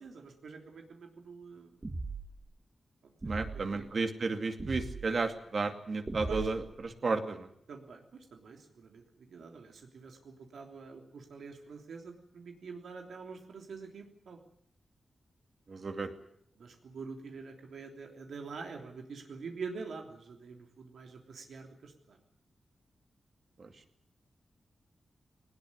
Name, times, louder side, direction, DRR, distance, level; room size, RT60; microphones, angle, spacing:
voice 1, 0.0-1.8 3.0-3.9 6.3-6.5 7.7-14.4 16.6-22.2, right 4 dB, 80° right, 3 dB, 3.3 m, -46 dB
sound 1, 1.8-2.4 3.2-3.7 4.6-5.1 6.1-6.8, right 3 dB, 20° right, 1.9 m, -38 dB
voice 2, 3.2-7.5 15.7-16.1 23.6-23.7, right 3 dB, 45° right, 6 dB, 2.4 m, -33 dB
20.5 x 19.5 x 9.7 m, 0.70 s
wide cardioid pair, 155°, 0 cm